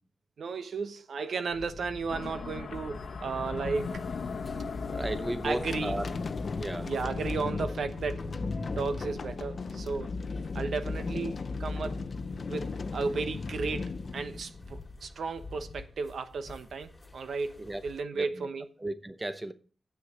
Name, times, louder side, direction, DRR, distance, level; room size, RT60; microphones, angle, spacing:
voice 1, 0.4-4.0 5.4-6.0 6.8-8.3 8.8-10.2 10.5-12.0 12.4-18.7, right 4 dB, 70° right, 1.0 m, -34 dB
sound 1, 1.5-18.0, left 2 dB, 20° left, 2.4 m, -48 dB
sound 2, 2.1-14.7, left 4 dB, 70° left, 0.9 m, -40 dB
voice 2, 4.9-6.1 6.6-6.9 17.6-17.8 18.1-18.5 18.8-19.5, right 1 dB, 15° right, 0.6 m, -34 dB
sound 3, 5.4-14.9, left 4 dB, 45° left, 0.6 m, -36 dB
7.7 x 6.8 x 7.4 m
wide cardioid pair, 120°, 0 cm